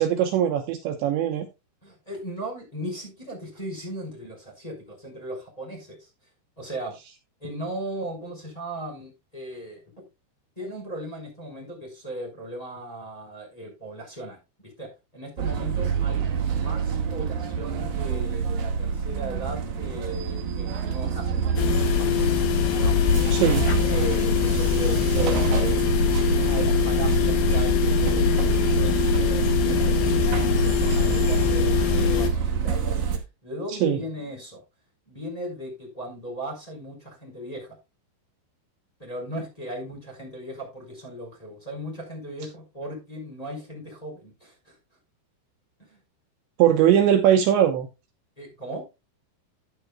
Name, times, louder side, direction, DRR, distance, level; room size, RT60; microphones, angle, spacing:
voice 1, 0.0-1.5 23.3-23.7 33.7-34.0 46.6-47.9, right 10 dB, 75° right, 3.0 m, -20 dB
voice 2, 1.8-6.1 6.6-7.0 7.4-9.8 10.6-22.4 22.8-23.1 23.9-25.8 26.3-34.6 35.1-37.8 39.0-44.8 45.8-46.0 46.7-46.8 48.4-48.8, right 1 dB, 10° left, 4.5 m, -37 dB
sound 1, 15.4-33.2, right 7 dB, 55° right, 2.9 m, -27 dB
sound 2, 21.6-32.3, left 9 dB, 65° left, 2.5 m, -23 dB
11.0 x 11.0 x 2.3 m
omnidirectional pair, 5.7 m